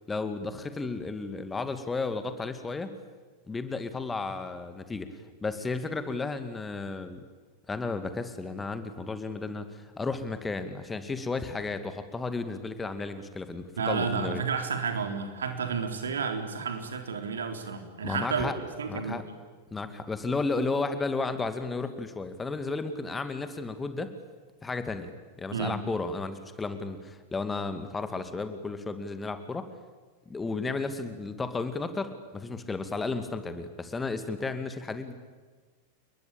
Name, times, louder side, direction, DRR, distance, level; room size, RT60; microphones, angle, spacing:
voice 1, 0.1-2.9 3.5-5.1 5.4-7.2 7.7-14.4 18.0-18.5 18.9-19.2 19.7-24.1 24.6-25.1 25.4-29.7 30.3-35.1, left 3 dB, 15° left, 10 dB, 2.3 m, -33 dB
voice 2, 13.8-19.2 25.5-25.8, right 5 dB, 70° right, 6 dB, 3.7 m, -31 dB
29.5 x 22.0 x 8.9 m, 1.4 s
figure-of-eight pair, 90°, 0 cm